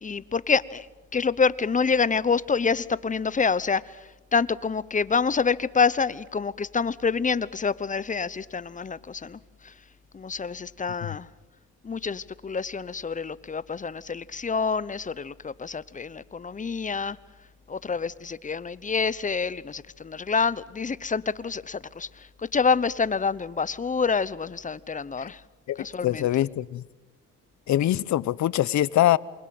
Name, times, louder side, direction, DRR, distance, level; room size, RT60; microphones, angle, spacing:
voice 1, 0.0-0.9 1.1-9.7 10.1-11.3 11.8-17.2 17.7-25.4 25.8-26.3, left 5 dB, 25° left, 0.9 m, -27 dB
voice 2, 25.7-26.8 27.7-29.2, left 13 dB, 70° left, 0.9 m, -23 dB
28.0 x 24.5 x 7.8 m
cardioid pair, 90°, 30 cm